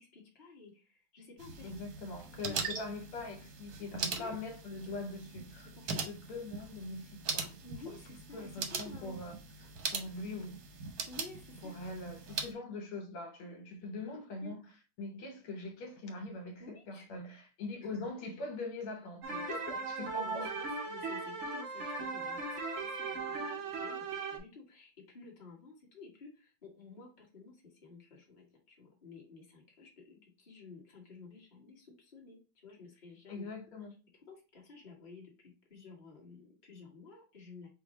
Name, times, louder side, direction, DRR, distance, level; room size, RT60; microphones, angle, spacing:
voice 1, 0.0-1.8 2.3-2.9 4.1-4.3 4.8-4.9 5.6-6.1 7.6-9.2 11.1-11.7 14.4-14.5 16.6-17.1 17.9-18.0 19.3-19.4 19.7-33.5 34.3-37.7, left 4 dB, 25° left, 1.3 m, -53 dB
sound 1, 1.4-12.5, right 5 dB, 60° right, 1.0 m, -41 dB
voice 2, 1.6-7.6 7.9-8.0 8.3-10.6 11.6-14.6 15.0-20.9 33.3-34.0, left 2 dB, 80° left, 1.9 m, -43 dB
sound 2, 19.2-24.4, right 3 dB, 90° right, 0.6 m, -38 dB
4.9 x 2.5 x 3.9 m
omnidirectional pair, 2.3 m